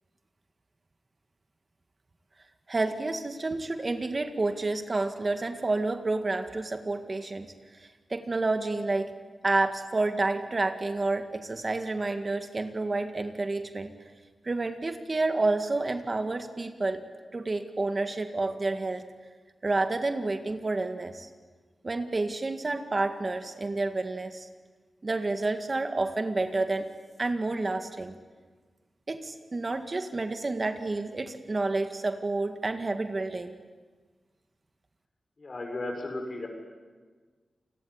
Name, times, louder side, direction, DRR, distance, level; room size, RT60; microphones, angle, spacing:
voice 1, 2.7-9.1 9.4-13.9 14.4-17.0 17.3-19.0 19.6-21.3 21.8-24.5 25.0-26.9 27.2-28.1 29.1-33.5, right 2 dB, 40° right, 8 dB, 1.9 m, -29 dB
voice 2, 35.4-36.5, left 2 dB, 45° left, 4 dB, 6.9 m, -35 dB
28.5 x 21.0 x 9.8 m, 1.4 s
wide cardioid pair, 85°, 0 cm